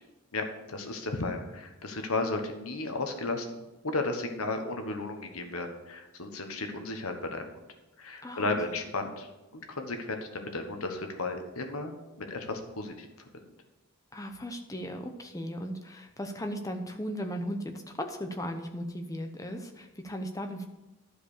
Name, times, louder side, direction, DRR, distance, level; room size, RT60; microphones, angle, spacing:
voice 1, 0.3-3.6 3.8-7.4 8.0-9.3 9.5-11.9 12.3-13.1, left 2 dB, 75° left, 5 dB, 1.3 m, -34 dB
voice 2, 14.1-20.7, equal, 15° left, 5 dB, 0.8 m, -37 dB
11.5 x 5.0 x 6.7 m, 1.1 s
head